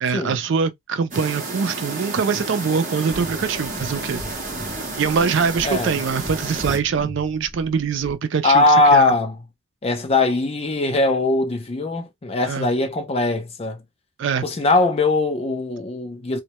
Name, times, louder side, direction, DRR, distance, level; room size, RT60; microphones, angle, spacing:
voice 1, 0.0-4.2 5.0-9.1 12.5-12.7 14.2-14.4, right 6 dB, 55° right, 0.3 m, -23 dB
sound 1, 1.1-6.8, right 3 dB, 35° right, 0.7 m, -31 dB
sound 2, 3.1-8.1, equal, 5° left, 0.9 m, -37 dB
voice 2, 5.6-6.0 8.4-9.4 9.8-13.8 14.4-16.4, left 2 dB, 30° left, 0.4 m, -20 dB
2.1 x 2.1 x 2.8 m
head